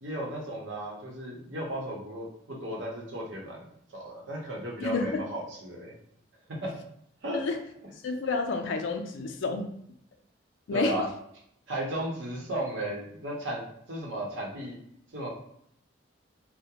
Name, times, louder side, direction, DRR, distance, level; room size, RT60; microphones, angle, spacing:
voice 1, 0.0-5.9 6.6-6.7 7.2-7.4 10.7-11.1 11.7-14.8 15.1-15.3, right 1 dB, 75° right, -2 dB, 0.8 m, -35 dB
voice 2, 4.8-5.2 7.3-7.6 8.0-9.7 10.7-11.1, left 3 dB, 70° left, 4 dB, 0.4 m, -29 dB
2.3 x 2.1 x 2.8 m, 0.70 s
head